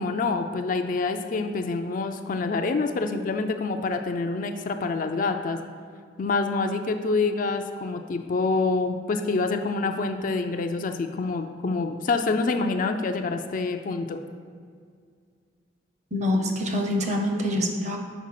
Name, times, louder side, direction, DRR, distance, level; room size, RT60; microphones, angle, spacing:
voice 1, 0.0-5.6 6.2-14.2, left 3 dB, 45° left, 6 dB, 0.4 m, -26 dB
voice 2, 16.1-18.0, left 1 dB, 40° right, 2 dB, 0.8 m, -25 dB
6.1 x 4.5 x 5.8 m, 2.1 s
head